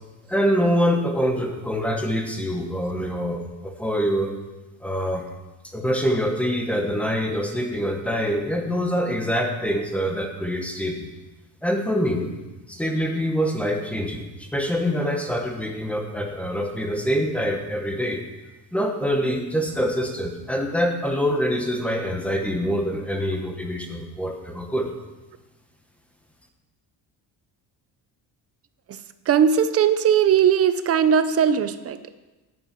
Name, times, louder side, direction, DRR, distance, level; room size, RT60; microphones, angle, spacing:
voice 1, 0.3-4.3 4.8-5.2 5.7-11.1 11.6-12.3 12.7-14.2 14.5-18.2 18.7-24.9, equal, 5° left, 3 dB, 1.0 m, -25 dB
voice 2, 29.3-32.1, right 8 dB, 40° right, 12 dB, 0.5 m, -19 dB
9.3 x 8.6 x 5.9 m, 1.1 s
cardioid pair, 180°, 39 cm